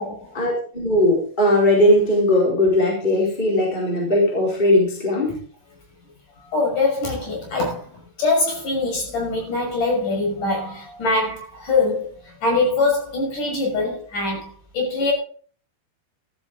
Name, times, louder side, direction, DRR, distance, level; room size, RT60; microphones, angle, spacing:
voice 1, 0.3-5.4, left 1 dB, 10° left, 4.3 m, -18 dB
voice 2, 6.4-7.9 8.2-12.1 12.4-15.1, left 3 dB, 50° left, 7.3 m, -23 dB
14.5 x 14.0 x 3.9 m
omnidirectional pair, 4.7 m